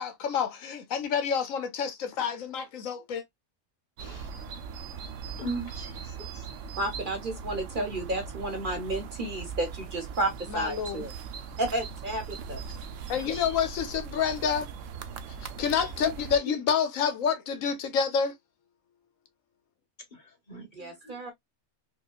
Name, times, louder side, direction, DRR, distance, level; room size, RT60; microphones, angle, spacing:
voice 1, 0.0-3.2 10.5-11.1 13.1-14.7 15.6-18.3, left 7 dB, 80° left, 1.1 m, -28 dB
voice 2, 4.0-4.3 5.4-6.5 13.3-13.5 16.4-16.6 20.1-21.2, right 1 dB, 35° left, 1.3 m, -39 dB
sound 1, 4.0-16.4, right 6 dB, 70° right, 0.9 m, -40 dB
voice 3, 6.8-11.1 11.6-12.6 20.7-21.3, right 2 dB, 45° right, 0.9 m, -32 dB
4.8 x 2.3 x 2.2 m
omnidirectional pair, 1.4 m